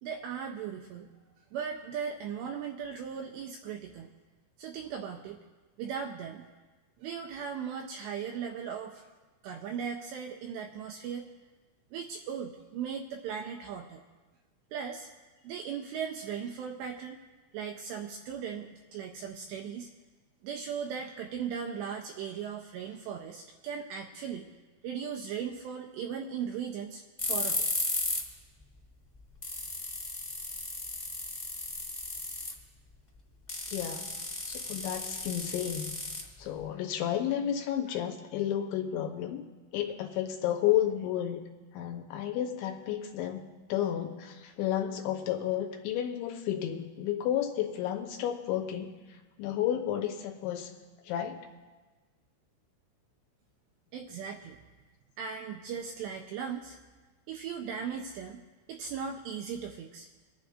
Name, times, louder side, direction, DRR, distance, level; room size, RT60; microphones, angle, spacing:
voice 1, 0.0-1.1 1.5-4.1 4.6-5.4 5.8-6.5 7.0-9.0 9.4-11.3 11.9-14.0 14.7-15.1 15.4-17.2 17.5-19.9 20.4-24.5 24.8-27.7 53.9-54.6 55.2-56.8 57.3-58.4 58.7-60.1, right 7 dB, 85° right, 2 dB, 2.5 m, -38 dB
sound 1, 27.2-28.3 28.6-28.7 29.1-29.2 29.4-32.6 33.5-36.6, left 2 dB, 20° left, 1.3 m, -35 dB
voice 2, 33.7-34.1 34.5-35.9 36.4-39.4 39.7-41.4 41.7-48.9 49.4-50.7 51.0-51.4, left 11 dB, 80° left, 3 dB, 3.1 m, -32 dB
26.0 x 10.5 x 2.5 m, 1.3 s
omnidirectional pair, 5.6 m